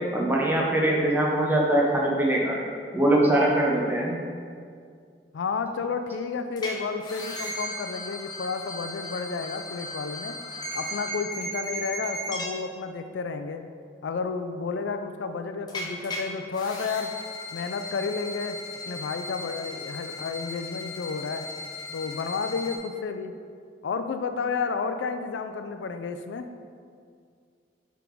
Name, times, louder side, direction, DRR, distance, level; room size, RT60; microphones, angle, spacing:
voice 1, 0.1-2.6 2.9-4.2, right 1 dB, 10° right, -3 dB, 0.7 m, -22 dB
voice 2, 5.3-10.4 10.7-13.7 14.0-17.1 17.5-18.6 18.9-21.5 21.9-23.3 23.8-26.5, left 5 dB, 85° left, 8 dB, 0.4 m, -31 dB
sound 1, 6.6-6.7 7.0-12.5 15.7-16.2 16.5-22.8, left 1 dB, 25° left, 0.9 m, -36 dB
7.6 x 3.5 x 4.6 m, 2.2 s
head